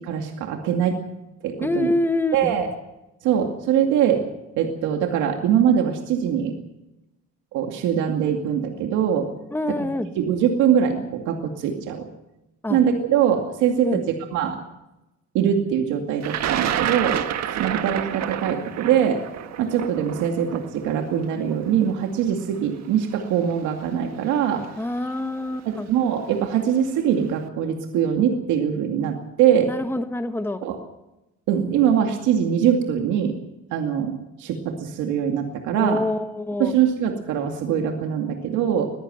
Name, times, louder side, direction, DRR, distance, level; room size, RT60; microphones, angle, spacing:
voice 1, 0.1-1.0 1.4-1.9 2.3-2.7 3.2-4.2 4.6-6.5 7.5-9.3 9.8-9.9 10.1-12.1 12.7-14.0 14.3-14.6 15.3-17.2 17.5-19.2 19.6-24.6 25.7-29.7 30.6-30.8 31.5-33.3 33.7-34.1 34.4-36.0 36.6-38.9, right 9 dB, 85° right, 3 dB, 2.4 m, -22 dB
voice 2, 1.6-2.5 9.5-10.1 12.6-12.8 13.8-14.0 24.8-25.9 29.7-30.6 35.7-36.7, left 2 dB, 10° left, 8 dB, 1.3 m, -26 dB
Thunder, 16.2-22.2 23.2-23.3 24.4-24.6 25.0-25.4, right 10 dB, 65° right, 1.5 m, -28 dB
22.0 x 15.0 x 8.0 m, 0.95 s
cardioid pair, 115°, 29 cm